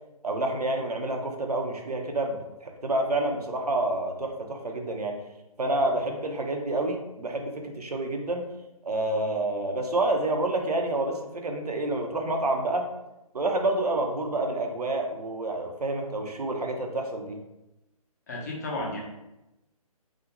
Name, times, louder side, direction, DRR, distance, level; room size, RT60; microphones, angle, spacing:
voice 1, 0.2-5.2 5.6-8.5 8.8-12.9 13.3-17.4, right 2 dB, 85° right, 3 dB, 0.5 m, -28 dB
voice 2, 18.3-19.0, left 2 dB, 30° left, -2 dB, 0.5 m, -32 dB
2.4 x 2.1 x 2.9 m, 0.96 s
figure-of-eight pair, 140°, 19 cm